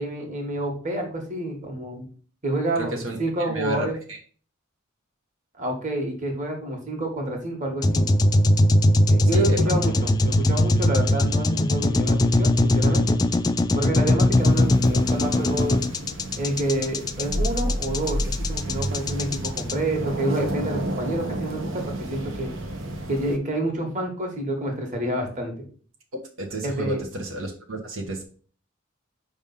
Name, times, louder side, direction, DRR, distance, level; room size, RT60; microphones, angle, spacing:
voice 1, 0.0-2.0 2.4-4.0 5.6-8.1 9.1-13.2 13.7-15.8 16.4-18.2 18.5-21.8 22.1-22.5 23.1-25.6 26.6-27.0, right 1 dB, 40° right, 1 dB, 1.6 m, -28 dB
voice 2, 2.8-3.2 3.5-4.2 9.3-9.7 26.4-28.2, right 1 dB, 85° right, 1 dB, 1.3 m, -31 dB
sound 1, 7.8-19.7, left 1 dB, 20° left, 0.3 m, -20 dB
sound 2, 14.3-23.4, right 1 dB, 65° right, 1.0 m, -31 dB
5.2 x 3.6 x 5.4 m, 0.42 s
head